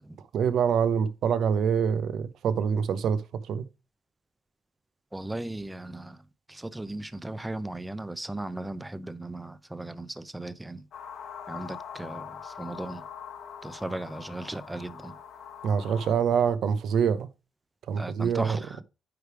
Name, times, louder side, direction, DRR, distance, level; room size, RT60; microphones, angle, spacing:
voice 1, 0.3-3.6 15.6-17.3 17.9-18.6, right 7 dB, 70° right, 0.9 m, -25 dB
voice 2, 5.1-6.2 6.5-10.8 11.5-13.0 13.6-15.2 18.0-18.8, right 2 dB, 10° right, 0.6 m, -37 dB
sound 1, 10.9-16.1, left 7 dB, 65° left, 1.2 m, -43 dB
9.4 x 3.4 x 4.8 m
cardioid pair, 90°, 0 cm